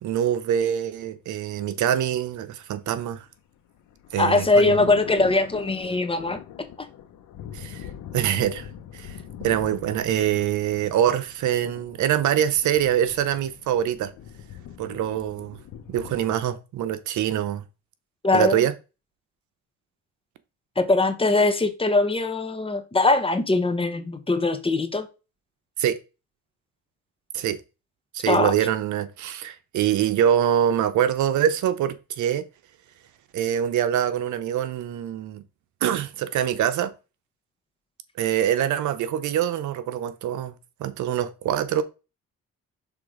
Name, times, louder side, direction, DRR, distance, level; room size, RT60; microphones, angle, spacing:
voice 1, 0.0-3.2 4.1-4.9 7.5-7.9 8.1-8.7 8.9-9.2 9.4-14.1 14.8-15.6 15.9-17.6 18.3-18.7 25.8-26.0 27.3-27.6 28.1-32.4 33.3-35.4 35.8-36.9 38.2-40.5 40.8-41.8, right 10 dB, 75° right, 0.8 m, -24 dB
sound 1, 3.3-16.4, left 9 dB, 80° left, 1.0 m, -42 dB
voice 2, 4.2-6.4 18.2-18.6 20.8-25.1 28.3-28.5, left 2 dB, 20° left, 1.1 m, -21 dB
6.0 x 3.4 x 4.9 m
cardioid pair, 90°, 30 cm